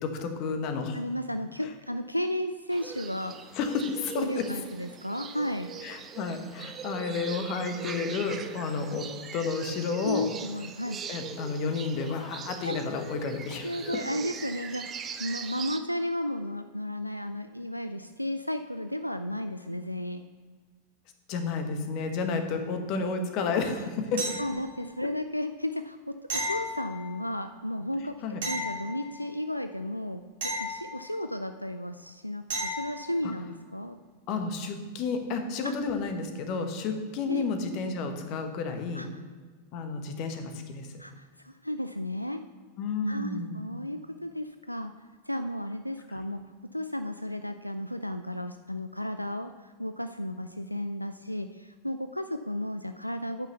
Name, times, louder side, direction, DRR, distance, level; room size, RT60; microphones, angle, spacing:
voice 1, 0.0-1.0 3.5-4.4 5.8-10.3 11.1-14.0 21.3-24.4 28.2-28.4 34.3-39.0 39.7-40.9 42.8-43.6, left 4 dB, 40° left, 6 dB, 1.3 m, -31 dB
voice 2, 0.9-3.4 4.2-5.7 10.0-11.0 12.6-12.8 13.6-20.2 24.4-28.2 28.4-34.0 35.6-35.7 37.3-37.5 38.9-39.2 41.0-42.4 43.1-44.9 45.3-46.4 46.7-53.5, left 1 dB, 90° left, 9 dB, 0.3 m, -34 dB
sound 1, 2.7-15.8, right 6 dB, 25° right, 0.6 m, -41 dB
sound 2, 24.2-24.9 26.3-27.4 28.4-29.4 30.4-31.4 32.5-33.1 35.9-36.0, equal, 60° right, 2.2 m, -34 dB
8.8 x 5.9 x 6.8 m, 1.5 s
figure-of-eight pair, 90°, 0 cm